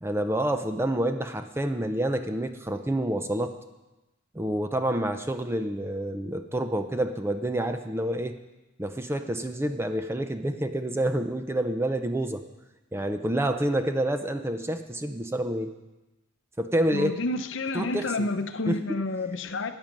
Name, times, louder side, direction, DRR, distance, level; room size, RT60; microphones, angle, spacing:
voice 1, 0.0-3.5 4.3-8.4 8.8-12.4 12.9-15.7 16.6-17.2 17.7-18.3 18.7-19.0, right 1 dB, 10° right, 8 dB, 0.4 m, -28 dB
voice 2, 16.9-19.7, left 2 dB, 60° left, 9 dB, 0.7 m, -29 dB
13.5 x 8.9 x 5.3 m, 1.0 s
head